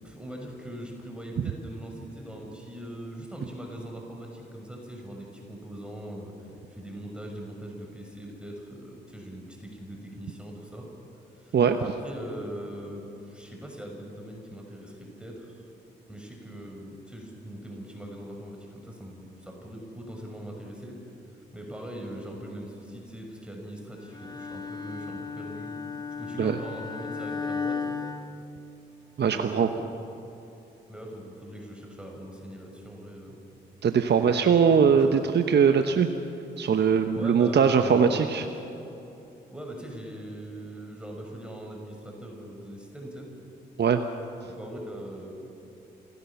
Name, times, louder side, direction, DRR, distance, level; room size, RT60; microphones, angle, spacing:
voice 1, 0.0-6.3 6.7-10.9 11.3-15.7 16.1-21.0 21.5-25.7 26.2-27.8 29.2-29.9 30.9-33.4 34.2-34.6 34.9-35.2 37.2-38.2 39.5-43.3 44.6-45.3, equal, 5° right, 1 dB, 6.0 m, -41 dB
Bowed string instrument, 24.1-29.1, left 5 dB, 20° left, 2.2 m, -35 dB
voice 2, 29.2-29.7 33.8-36.1 36.6-38.4 43.8-44.0, right 6 dB, 55° right, 7 dB, 1.1 m, -21 dB
28.0 x 16.5 x 7.2 m, 3.0 s
hypercardioid pair, 45°, 21 cm